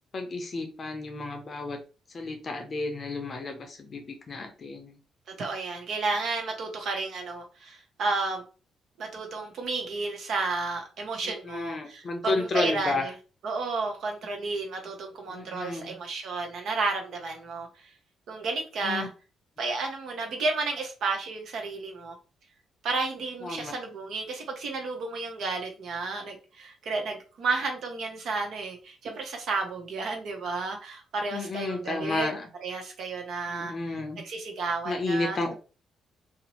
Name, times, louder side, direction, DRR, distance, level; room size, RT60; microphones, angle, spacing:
voice 1, 0.1-1.8 2.1-5.0 11.2-13.1 15.3-15.9 18.8-19.1 23.4-23.7 31.3-32.5 33.5-34.2 34.9-35.5, left 2 dB, 45° left, 0.5 m, -32 dB
voice 2, 5.3-8.4 9.0-13.1 13.4-17.9 18.3-19.1 19.6-22.2 22.8-32.3 32.6-35.4, right 3 dB, 70° right, 0.7 m, -32 dB
2.5 x 2.0 x 2.9 m
cardioid pair, 90°, 0 cm